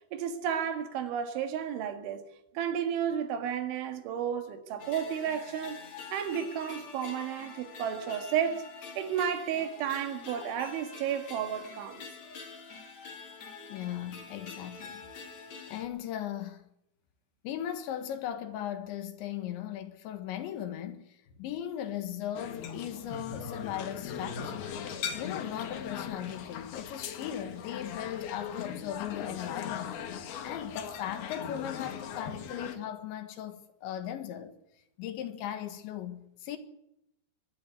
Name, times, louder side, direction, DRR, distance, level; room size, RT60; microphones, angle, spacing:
voice 1, 0.1-2.2 2.6-5.8 6.1-8.6 9.0-12.1, right 8 dB, 85° right, 4.2 m, -32 dB
sound 1, 4.8-15.8, left 5 dB, 45° left, 3.1 m, -46 dB
voice 2, 13.7-15.0 15.7-16.6 17.4-24.7 25.2-29.9 30.4-34.5 35.0-36.6, left 10 dB, 80° left, 3.8 m, -38 dB
sound 2, 22.4-32.8, left 7 dB, 65° left, 3.3 m, -39 dB
22.5 x 12.0 x 9.9 m
omnidirectional pair, 5.3 m